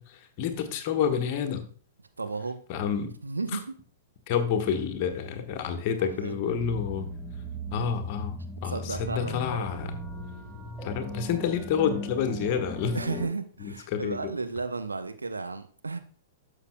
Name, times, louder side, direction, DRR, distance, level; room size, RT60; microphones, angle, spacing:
voice 1, 0.0-1.7 2.7-3.1 4.3-7.1 7.7-9.9 10.8-13.0 13.6-14.2, left 7 dB, 40° left, 6 dB, 1.3 m, -29 dB
voice 2, 2.2-2.6 3.2-3.8 6.2-6.3 8.7-9.7 12.9-16.0, right 3 dB, 80° right, 8 dB, 0.8 m, -33 dB
sound 1, 6.5-13.3, equal, ahead, 1.2 m, -38 dB
11.5 x 6.7 x 2.2 m, 0.42 s
figure-of-eight pair, 105°, 0 cm